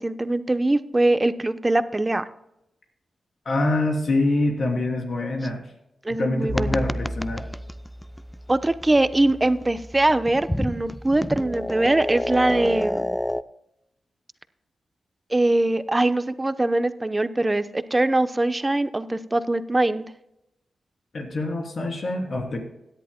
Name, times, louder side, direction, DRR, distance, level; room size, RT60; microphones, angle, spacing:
voice 1, 0.0-2.3 6.0-6.8 8.5-13.1 15.3-20.1, right 2 dB, 25° right, 12 dB, 0.8 m, -22 dB
voice 2, 3.4-5.6 6.2-7.5 21.1-22.6, left 2 dB, 65° left, 1 dB, 3.1 m, -25 dB
sound 1, 6.5-13.4, equal, 10° left, 0.5 m, -30 dB
16.5 x 10.5 x 2.2 m, 0.85 s
cardioid pair, 45°, 0 cm